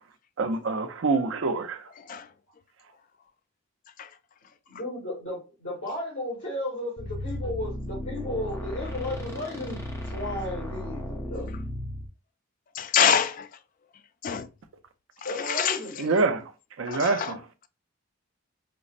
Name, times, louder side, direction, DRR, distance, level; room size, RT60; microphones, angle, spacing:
voice 1, 0.4-1.8 16.0-16.4 16.8-17.4, right 3 dB, 65° right, 0.5 m, -25 dB
voice 2, 4.7-11.5 15.2-16.0, left 1 dB, 75° left, 2.1 m, -34 dB
sound 1, 7.0-12.1, left 1 dB, 15° left, 0.7 m, -35 dB
voice 3, 12.8-13.5 14.2-14.5 15.4-15.8 16.9-17.3, left 8 dB, 40° left, 0.3 m, -25 dB
5.2 x 2.0 x 2.4 m
head